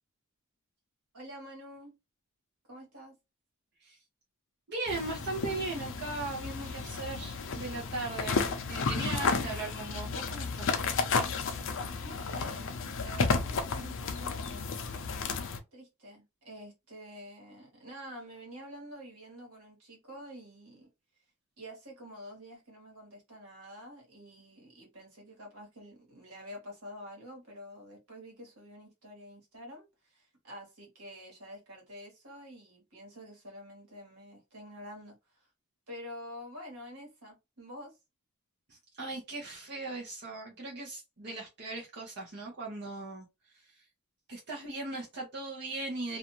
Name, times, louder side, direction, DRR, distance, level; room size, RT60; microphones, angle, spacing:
voice 1, 1.1-2.0 2.7-3.1 12.0-15.1 15.7-20.9 21.6-35.2 35.9-38.0, equal, 75° right, 1.4 m, -48 dB
voice 2, 4.7-8.4 8.7-10.8 38.7-43.2 44.3-46.2, right 2 dB, 50° right, 0.8 m, -38 dB
sound 1, 4.9-15.6, left 4 dB, 60° left, 0.5 m, -33 dB
2.5 x 2.5 x 2.9 m
head